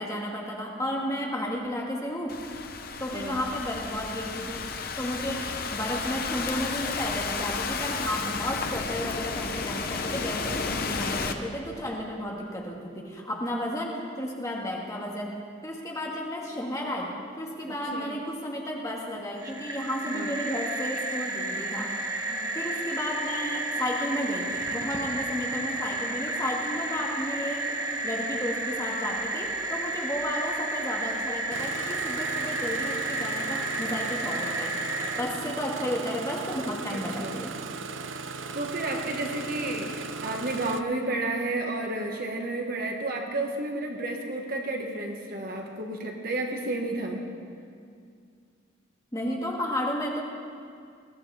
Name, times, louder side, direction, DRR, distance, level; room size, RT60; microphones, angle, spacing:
voice 1, 0.0-2.4 3.0-22.0 22.5-27.8 28.0-34.8 35.2-37.5 49.1-50.2, equal, 15° left, -2 dB, 1.6 m, -33 dB
Thunderstorm / Rain, 2.3-11.3, left 4 dB, 45° left, 0.8 m, -32 dB
voice 2, 3.1-3.4 17.7-18.2 20.1-20.4 22.3-22.5 36.9-37.5 38.1-38.2 38.5-47.2, right 2 dB, 45° right, 1 dB, 1.5 m, -32 dB
sound 1, 19.4-35.2, right 2 dB, 15° right, 1.0 m, -32 dB
Engine starting, 31.5-40.8, right 4 dB, 70° right, 0.6 m, -37 dB
21.0 x 14.0 x 3.4 m, 2.2 s
head